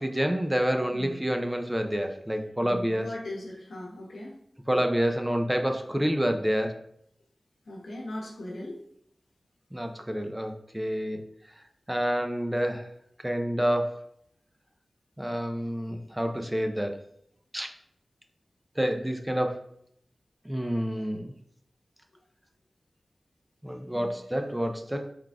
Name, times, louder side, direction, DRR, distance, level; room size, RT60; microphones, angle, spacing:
voice 1, 0.0-3.1 4.7-6.7 9.7-11.2 11.9-12.9 13.2-14.0 15.2-16.9 17.5-17.7 18.8-19.6 20.5-21.3 23.6-25.1, equal, 10° right, 4 dB, 0.5 m, -28 dB
voice 2, 2.6-4.3 7.7-8.8 23.9-24.1, left 1 dB, 80° left, -2 dB, 1.0 m, -38 dB
4.8 x 3.7 x 2.3 m, 0.70 s
cardioid pair, 45°, 0 cm